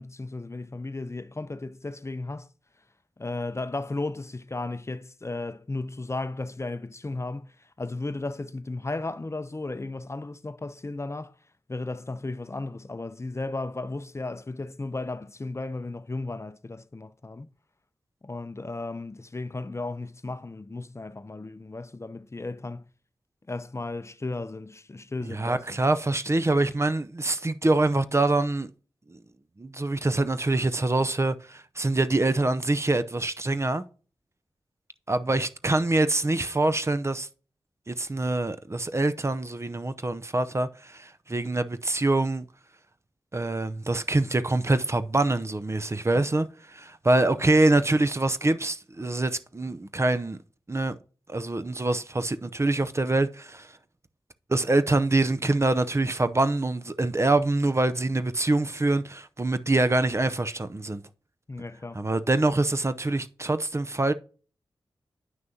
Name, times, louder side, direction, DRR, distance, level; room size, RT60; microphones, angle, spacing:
voice 1, 0.0-2.5 3.2-11.3 11.7-17.5 18.2-22.9 23.5-25.8 61.5-62.0, left 2 dB, 30° left, 0.6 m, -35 dB
voice 2, 25.2-28.7 29.1-29.2 29.6-33.8 35.1-37.3 37.9-42.4 43.3-50.4 50.7-51.0 51.3-53.7 54.5-61.0 61.9-64.1, right 2 dB, 30° right, 0.6 m, -25 dB
9.2 x 6.1 x 2.8 m
cardioid pair, 40°, 9 cm